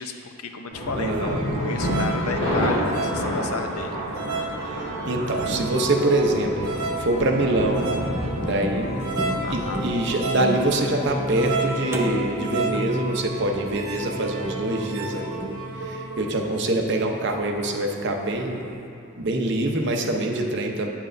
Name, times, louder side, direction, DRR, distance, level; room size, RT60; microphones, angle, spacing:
voice 1, 0.0-4.0 9.4-9.9, left 4 dB, 90° left, 5 dB, 0.5 m, -33 dB
sound 1, 0.7-10.3, equal, 60° left, 1.6 m, -29 dB
voice 2, 1.0-1.4 4.7-7.9 8.4-8.8 9.5-15.6 15.8-18.6 19.2-20.9, right 2 dB, 55° right, 2 dB, 0.6 m, -25 dB
sound 2, 1.1-16.4, right 2 dB, 90° right, 0.9 m, -32 dB
sound 3, 6.8-18.0, right 1 dB, 10° right, 0.4 m, -34 dB
8.8 x 7.1 x 2.5 m, 2.7 s
head